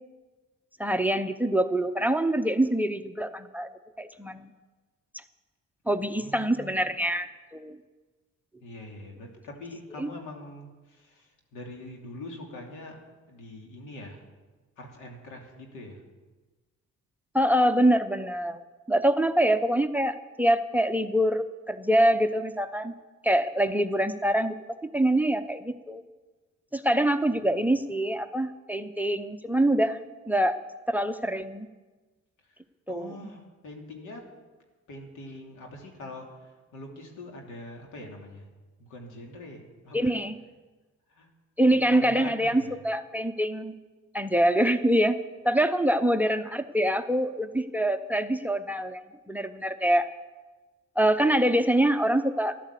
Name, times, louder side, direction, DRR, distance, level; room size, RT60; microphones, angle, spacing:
voice 1, 0.8-3.7 4.0-4.5 5.9-7.3 7.5-7.8 10.0-10.1 17.3-18.6 18.9-22.9 23.2-24.6 24.8-26.0 26.7-30.0 30.3-30.6 30.9-31.7 32.9-33.1 39.9-40.4 41.6-43.7 44.1-45.2 45.4-50.1 51.0-52.6, right 1 dB, 5° right, 11 dB, 0.8 m, -25 dB
voice 2, 6.1-6.8 8.6-13.0 13.3-14.2 14.8-16.0 32.4-32.6 32.9-34.3 34.9-38.5 38.8-40.2 41.1-41.3 41.7-42.8, left 1 dB, 85° left, 2 dB, 3.1 m, -44 dB
13.5 x 11.5 x 8.3 m, 1.3 s
cardioid pair, 90°, 30 cm